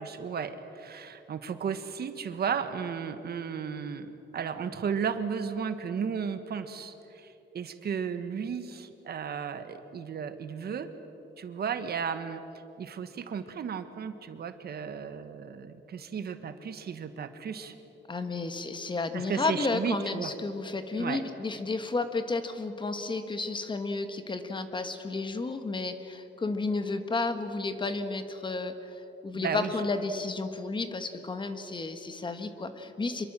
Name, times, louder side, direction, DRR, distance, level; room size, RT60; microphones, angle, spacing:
voice 1, 0.0-10.9 11.4-12.4 12.8-17.7 19.1-20.3 21.0-21.2 29.3-29.7, right 6 dB, 55° right, 9 dB, 1.5 m, -34 dB
voice 2, 18.1-33.3, left 3 dB, 25° left, 8 dB, 1.4 m, -32 dB
26.0 x 23.0 x 7.6 m, 2.9 s
wide cardioid pair, 155°, 20 cm